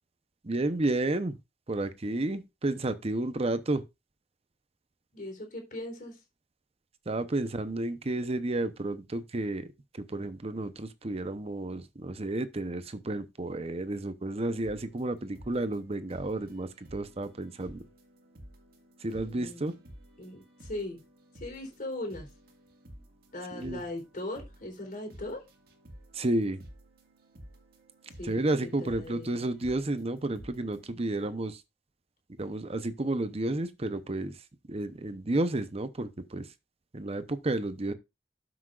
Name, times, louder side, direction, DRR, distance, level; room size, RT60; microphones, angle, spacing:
voice 1, 0.4-1.3 1.7-3.8 7.1-9.7 9.9-17.8 19.0-19.8 23.5-23.8 26.1-26.6 28.2-31.6 32.4-34.3 34.7-36.5 36.9-37.9, right 2 dB, 35° right, 0.8 m, -31 dB
voice 2, 5.1-6.1 19.1-19.6 20.2-21.0 21.4-22.3 23.3-25.4 28.2-29.4, left 1 dB, 50° left, 3.7 m, -39 dB
sound 1, 14.6-30.9, equal, 60° right, 1.9 m, -53 dB
12.5 x 6.1 x 2.5 m
head